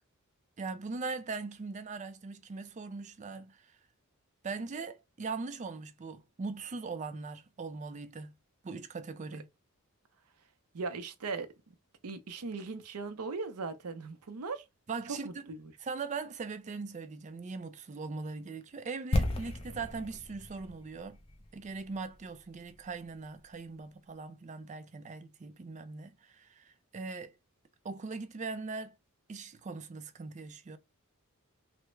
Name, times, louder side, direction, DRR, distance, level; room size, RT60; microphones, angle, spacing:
voice 1, 0.6-3.8 4.4-8.3 8.6-9.5 14.9-15.4 15.8-21.2 21.5-27.3 27.8-29.0 29.3-30.8, right 4 dB, 35° right, 0.4 m, -40 dB
voice 2, 10.7-11.5 12.0-14.6 15.1-15.7, right 4 dB, 85° right, 0.6 m, -38 dB
sound 1, 19.1-23.1 23.3-23.4, left 1 dB, 25° left, 0.5 m, -35 dB
3.4 x 2.0 x 3.1 m
head